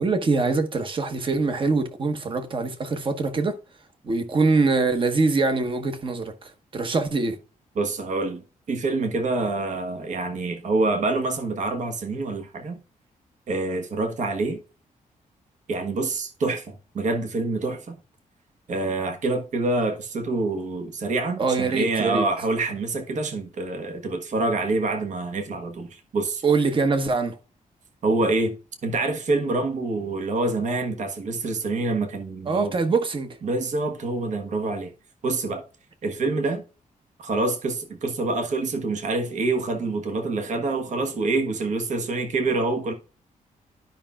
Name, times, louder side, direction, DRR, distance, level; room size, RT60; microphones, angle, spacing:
voice 1, 0.0-3.6 4.0-7.4 21.4-22.2 26.4-27.4 32.5-33.4, right 3 dB, 35° right, 1.2 m, -23 dB
voice 2, 7.8-12.8 13.5-14.6 15.7-18.0 18.7-26.4 28.0-28.6 28.8-32.7 33.4-34.9 35.2-35.6 36.0-36.6 37.2-42.9, right 3 dB, 60° right, 1.4 m, -26 dB
12.0 x 5.7 x 2.4 m
wide cardioid pair, 145°, 14 cm